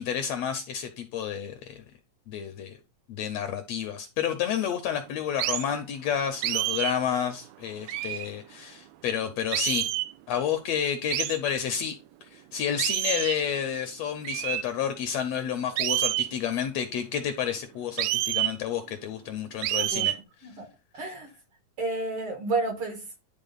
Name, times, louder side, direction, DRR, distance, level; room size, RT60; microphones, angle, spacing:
voice 1, 0.0-1.8 2.3-2.8 3.1-9.9 10.3-11.9 12.2-20.1 21.0-21.1, left 8 dB, 75° left, 1.6 m, -30 dB
sound 1, 5.4-5.7 6.4-7.0 7.9-8.3 9.5-10.1 11.1-11.4 12.8-13.4 14.2-14.6 15.8-16.3 18.0-18.6 19.6-20.2, right 15 dB, 90° right, 1.5 m, -28 dB
voice 2, 19.8-20.1 20.4-20.7 21.0-21.3 21.8-23.0, right 3 dB, 55° right, 1.8 m, -30 dB
10.5 x 3.6 x 4.0 m
omnidirectional pair, 3.5 m